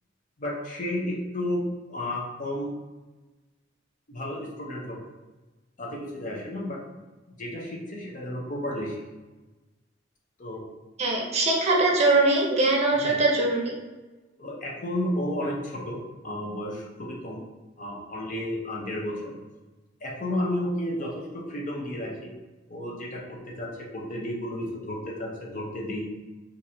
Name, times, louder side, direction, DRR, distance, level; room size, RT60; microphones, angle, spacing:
voice 1, 0.4-1.6 1.9-2.7 4.1-5.0 5.8-6.8 7.4-9.0 10.4-10.6 13.0-13.2 14.4-17.4 17.8-19.4 20.0-22.3 22.7-26.1, left 1 dB, 40° left, -3 dB, 0.7 m, -32 dB
voice 2, 11.0-13.7, right 2 dB, 35° right, -2 dB, 0.7 m, -22 dB
3.1 x 2.6 x 4.2 m, 1.2 s
head